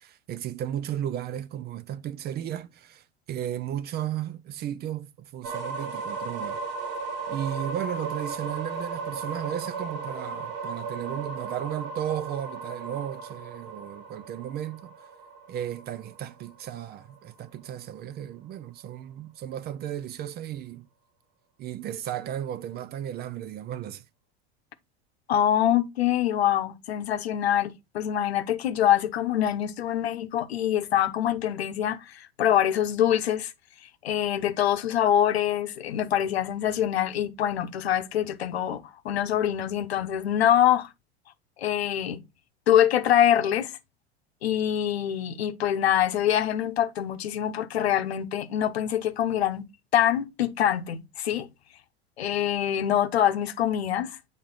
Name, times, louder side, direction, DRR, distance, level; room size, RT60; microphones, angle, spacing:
voice 1, 0.0-6.6 7.3-15.1 15.5-20.9 21.6-24.0, right 10 dB, 30° right, 0.5 m, -34 dB
sound 1, 5.4-17.2, right 4 dB, 50° right, 1.6 m, -36 dB
voice 2, 25.3-33.5 33.8-40.9 41.6-42.2 42.7-43.8 44.4-49.6 49.9-51.5 52.2-54.2, left 10 dB, 75° left, 0.9 m, -25 dB
8.6 x 3.4 x 4.0 m
figure-of-eight pair, 85°, 32 cm